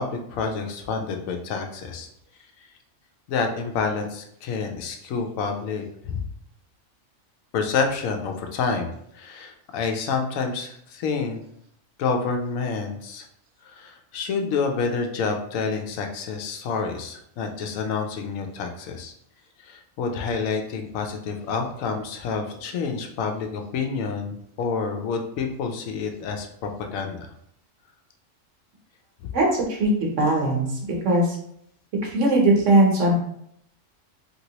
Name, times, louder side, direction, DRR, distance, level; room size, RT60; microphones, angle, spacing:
voice 1, 0.0-2.1 2.6-2.7 3.3-6.2 7.5-11.4 12.0-13.3 13.6-19.1 19.6-27.3 29.2-29.3, left 5 dB, 85° left, 4 dB, 1.0 m, -28 dB
voice 2, 29.3-30.8 31.0-31.4 32.0-33.1, right 1 dB, 70° right, -1 dB, 1.2 m, -20 dB
2.9 x 2.9 x 2.8 m, 0.71 s
omnidirectional pair, 1.4 m